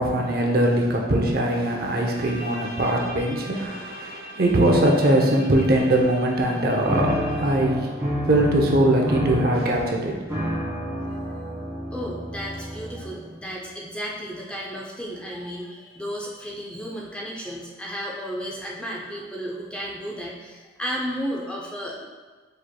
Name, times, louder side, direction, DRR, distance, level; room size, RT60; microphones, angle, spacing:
voice 1, 0.0-7.9 8.3-10.2, right 1 dB, 55° right, 0 dB, 0.6 m, -21 dB
Bowed string instrument, 2.0-7.9, equal, 75° right, 0.9 m, -41 dB
sound 1, 6.9-13.3, equal, 15° right, 1.5 m, -29 dB
voice 2, 11.0-11.3 11.9-22.0, equal, 5° left, -4 dB, 0.5 m, -33 dB
4.9 x 4.3 x 2.2 m, 1.4 s
head